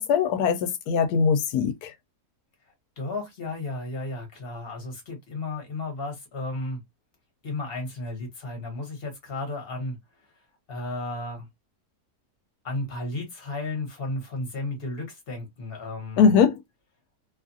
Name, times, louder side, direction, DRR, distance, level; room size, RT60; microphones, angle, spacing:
voice 1, 0.0-1.9 16.2-16.6, left 6 dB, 90° left, 1.1 m, -21 dB
voice 2, 3.0-6.8 7.4-10.0 10.7-11.5 12.6-16.3, left 2 dB, 40° left, 1.2 m, -33 dB
2.9 x 2.4 x 2.6 m
omnidirectional pair, 1.6 m